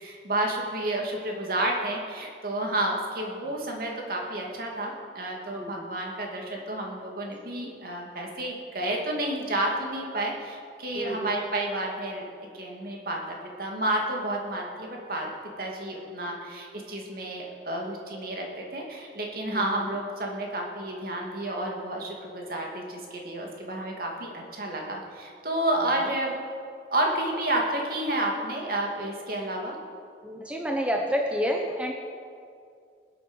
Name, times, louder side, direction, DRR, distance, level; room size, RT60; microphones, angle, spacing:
voice 1, 0.0-12.2 12.5-15.3 15.6-26.4 26.9-29.8, right 1 dB, 55° right, 0 dB, 2.5 m, -30 dB
voice 2, 5.5-5.9 10.9-11.3 19.5-19.8 30.2-31.9, equal, 5° right, 1 dB, 0.9 m, -29 dB
20.5 x 8.6 x 6.4 m, 2.3 s
head